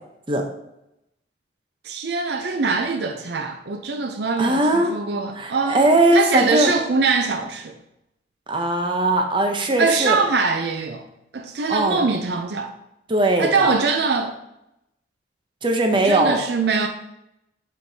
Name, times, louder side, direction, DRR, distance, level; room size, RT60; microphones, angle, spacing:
voice 1, 1.8-7.8 9.8-11.0 11.3-12.7 13.4-14.4 15.9-16.9, right 4 dB, 60° right, 4 dB, 0.5 m, -23 dB
voice 2, 4.4-4.9 5.4-6.7 8.5-10.2 11.7-12.0 13.1-13.7 15.6-16.4, right 1 dB, 25° right, 4 dB, 0.7 m, -19 dB
7.8 x 4.5 x 2.8 m, 0.86 s
head